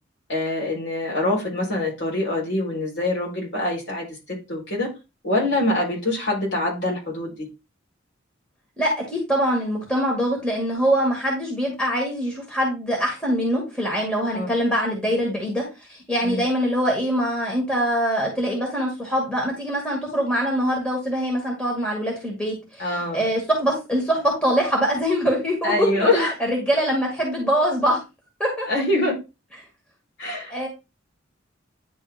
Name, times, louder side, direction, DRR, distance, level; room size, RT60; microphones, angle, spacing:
voice 1, 0.3-4.9 5.2-7.5 14.3-14.5 16.2-16.4 22.8-23.2 25.6-26.3 28.7-29.1 30.2-30.5, left 2 dB, 65° left, -2 dB, 3.9 m, -24 dB
voice 2, 8.8-15.6 15.9-28.0 28.4-28.7 30.5-30.7, equal, 5° left, -1 dB, 2.0 m, -23 dB
10.0 x 3.8 x 3.5 m, 0.26 s
head